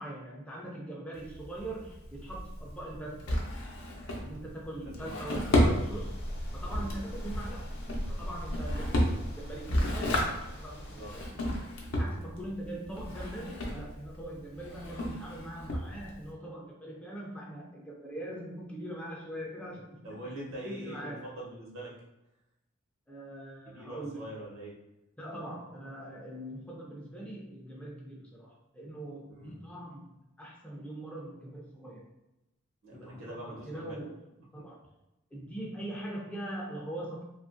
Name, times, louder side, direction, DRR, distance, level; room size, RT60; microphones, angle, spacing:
voice 1, 0.0-3.5 4.2-6.2 6.5-7.8 8.1-11.6 11.9-20.2 20.6-21.2 23.1-24.3 25.2-32.1 32.9-34.1 34.5-34.9 35.3-37.2, right 1 dB, 5° left, -3 dB, 0.3 m, -42 dB
Drawer open or close, 1.1-16.3, left 1 dB, 85° left, 0.6 m, -33 dB
voice 2, 4.8-5.7 6.7-7.0 10.8-11.1 20.0-21.9 23.6-24.8 29.3-29.6 32.8-34.0, right 1 dB, 70° right, -4 dB, 0.9 m, -43 dB
sound 1, 5.5-11.3, equal, 50° left, 0.7 m, -39 dB
2.7 x 2.4 x 2.5 m, 0.93 s
head